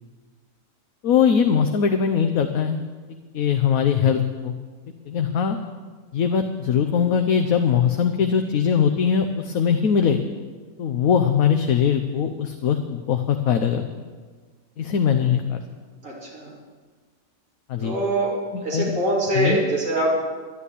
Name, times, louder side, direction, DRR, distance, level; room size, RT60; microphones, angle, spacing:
voice 1, 1.0-2.8 3.3-4.5 5.1-5.6 6.1-10.2 10.8-13.8 14.8-15.6 17.7-17.9 18.5-18.9 19.3-19.6, left 7 dB, 70° left, 6 dB, 1.2 m, -21 dB
voice 2, 16.0-16.5 17.8-18.3 18.6-20.1, right 1 dB, 60° right, -5 dB, 3.5 m, -23 dB
12.0 x 11.5 x 8.3 m, 1.5 s
omnidirectional pair, 1.6 m